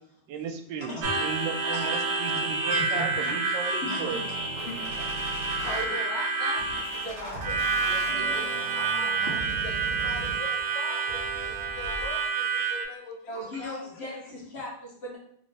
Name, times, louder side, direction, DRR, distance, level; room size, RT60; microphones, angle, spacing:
voice 1, 0.3-4.3, right 6 dB, 85° right, 5 dB, 1.3 m, -35 dB
voice 2, 0.9-1.2 1.6-2.0 2.3-3.4 3.8-4.1 4.7-4.8 5.6-6.6 6.9-7.4 9.4-9.5 13.3-15.2, equal, 50° left, -3 dB, 0.8 m, -37 dB
Harmonica, 1.0-12.8, right 4 dB, 70° right, 0.6 m, -29 dB
sound 1, 4.1-5.8 6.6-10.6 11.1-12.1, right 1 dB, 50° right, 1.5 m, -40 dB
voice 3, 4.4-5.1 5.6-6.0 7.0-9.3 9.6-11.2 11.5-14.0, left 3 dB, 85° left, 3 dB, 1.4 m, -43 dB
3.2 x 2.6 x 3.2 m, 0.65 s
omnidirectional pair, 2.0 m